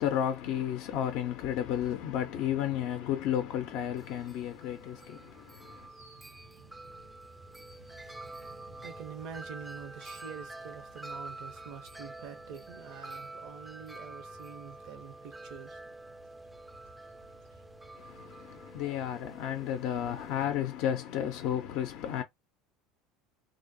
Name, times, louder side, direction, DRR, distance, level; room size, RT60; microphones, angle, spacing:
voice 1, 0.0-5.9 17.9-22.2, left 10 dB, 60° left, 0.4 m, -32 dB
sound 1, 1.5-19.1, right 1 dB, 85° right, 1.1 m, -57 dB
Wind chime, 4.0-20.4, right 2 dB, 10° right, 0.3 m, -48 dB
voice 2, 8.1-16.0, right 7 dB, 60° right, 0.5 m, -46 dB
2.5 x 2.0 x 2.5 m
hypercardioid pair, 80°, 0 cm